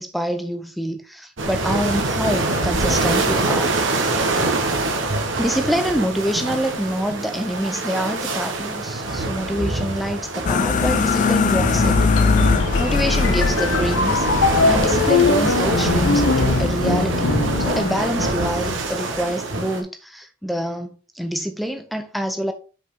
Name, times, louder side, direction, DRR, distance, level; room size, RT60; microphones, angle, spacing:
voice 1, 0.0-4.2 4.7-4.8 5.3-12.0 12.8-14.3 14.7-17.3 17.6-22.5, equal, ahead, 0.6 m, -26 dB
sound 1, 1.4-19.8, right 2 dB, 65° right, 1.3 m, -24 dB
sound 2, 10.5-16.7, left 4 dB, 35° left, 0.3 m, -21 dB
sound 3, 12.2-18.9, left 4 dB, 75° left, 0.7 m, -22 dB
6.1 x 5.0 x 3.7 m
head